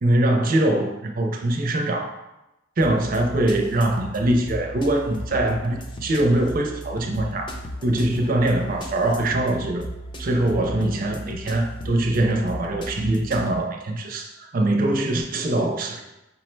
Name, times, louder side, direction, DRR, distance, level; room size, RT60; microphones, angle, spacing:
voice 1, 0.0-2.1 2.8-7.5 7.8-9.9 10.2-16.0, right 1 dB, 45° right, 3 dB, 0.5 m, -23 dB
sound 1, 2.8-13.5, equal, 25° left, 0.4 m, -36 dB
5.5 x 2.1 x 4.4 m, 0.98 s
head